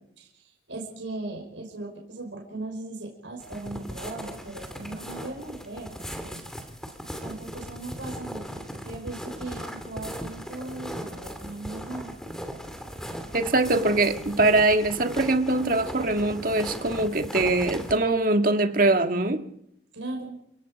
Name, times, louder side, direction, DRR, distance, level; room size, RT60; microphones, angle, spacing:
voice 1, 0.2-6.4 7.2-12.1 19.9-20.4, right 2 dB, 85° right, 1 dB, 5.7 m, -38 dB
sound 1, 3.4-18.0, equal, 5° left, 2.5 m, -38 dB
voice 2, 13.3-19.4, right 2 dB, 50° right, 6 dB, 1.9 m, -22 dB
30.0 x 17.0 x 5.3 m, 0.74 s
head